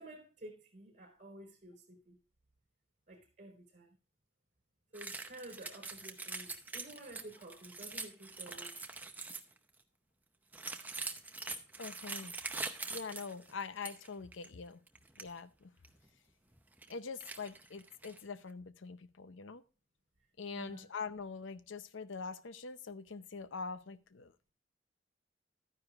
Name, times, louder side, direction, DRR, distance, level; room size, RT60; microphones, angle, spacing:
voice 1, 0.0-2.2 3.1-3.9 4.9-8.7 20.5-20.9, right 1 dB, 40° right, 3.9 m, -52 dB
sound 1, 4.9-9.6 10.5-14.1 14.3-14.5 14.9-15.3 15.8-15.9 16.5-16.9 17.2-18.2, right 3 dB, 10° right, 0.7 m, -44 dB
voice 2, 11.8-12.3 12.9-14.8 15.2-15.7 16.9-19.6 20.4-24.5, left 5 dB, 80° left, 0.7 m, -44 dB
13.0 x 9.8 x 2.4 m
head